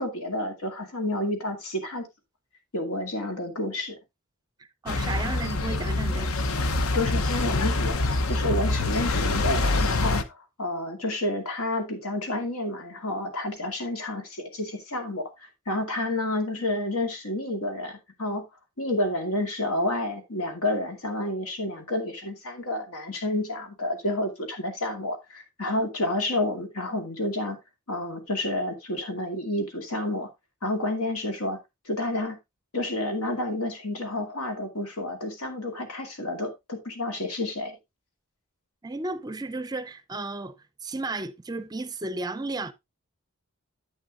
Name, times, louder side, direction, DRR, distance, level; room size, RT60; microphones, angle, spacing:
voice 1, 0.0-2.1 2.7-4.0 6.9-18.5 18.8-27.6 27.9-30.3 30.6-31.6 31.9-32.4 32.7-37.8, left 1 dB, 90° left, 2.3 m, -30 dB
voice 2, 4.6-6.3 38.8-40.5 40.8-42.7, right 2 dB, 20° right, 0.5 m, -33 dB
sound 1, 4.9-10.2, left 2 dB, 70° left, 0.8 m, -25 dB
10.5 x 8.1 x 2.4 m
head